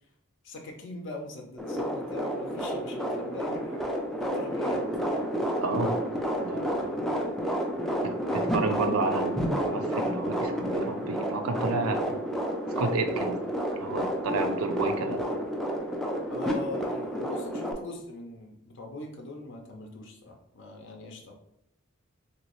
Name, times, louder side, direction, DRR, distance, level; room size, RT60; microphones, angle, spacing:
voice 1, 0.4-4.9 16.3-21.3, left 2 dB, 60° left, 2 dB, 0.6 m, -41 dB
sound 1, 1.6-17.7, equal, ahead, 0.4 m, -30 dB
voice 2, 5.6-6.0 6.4-7.3 8.0-12.2 12.8-13.3 13.8-15.2, right 3 dB, 85° right, 6 dB, 0.5 m, -31 dB
3.0 x 2.9 x 3.0 m, 0.75 s
head